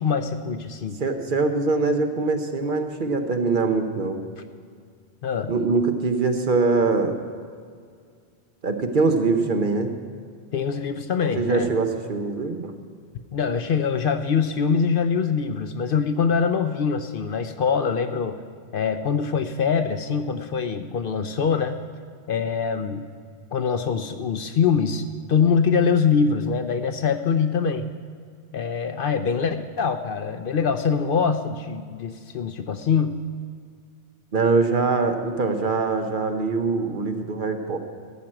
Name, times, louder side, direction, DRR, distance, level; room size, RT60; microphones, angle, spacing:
voice 1, 0.0-1.0 5.2-5.5 10.5-11.7 13.3-18.4 18.7-21.8 22.3-23.1 23.5-27.9 28.5-33.2, left 6 dB, 60° left, 9 dB, 0.7 m, -23 dB
voice 2, 1.0-4.2 5.5-7.2 8.6-9.9 11.4-12.7 34.3-37.8, right 3 dB, 50° right, 5 dB, 1.0 m, -23 dB
14.0 x 5.9 x 8.7 m, 2.1 s
omnidirectional pair, 1.1 m